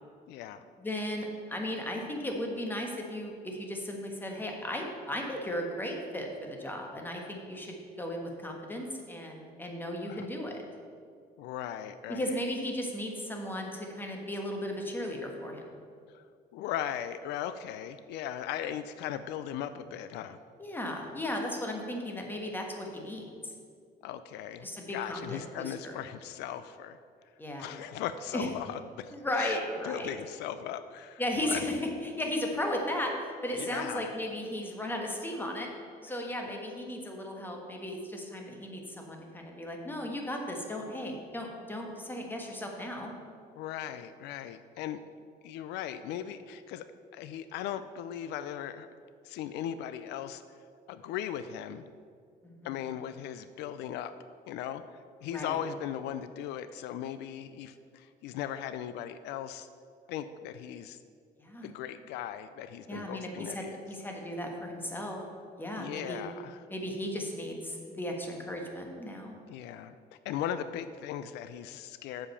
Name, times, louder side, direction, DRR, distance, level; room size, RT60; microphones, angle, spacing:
voice 1, 0.3-0.6 10.1-10.3 11.4-12.4 16.1-16.2 16.5-20.4 24.0-27.0 27.6-29.6 29.8-31.6 33.6-34.1 36.1-36.3 43.6-45.0 45.4-48.9 49.2-50.4 50.9-51.8 52.6-54.1 54.5-54.8 55.2-59.7 60.1-61.0 61.6-63.8 65.7-66.6 69.5-70.0 70.2-72.3, left 10 dB, 85° left, 12 dB, 0.4 m, -38 dB
voice 2, 0.8-10.6 12.1-15.6 20.6-23.5 24.6-25.9 27.4-27.8 28.3-28.5 29.1-30.1 31.2-35.7 36.0-43.1 52.4-52.7 55.3-55.6 61.4-61.7 62.9-66.2 66.7-69.3, left 1 dB, 10° left, 1 dB, 1.3 m, -36 dB
7.4 x 5.1 x 6.8 m, 2.2 s
cardioid pair, 110°, 17 cm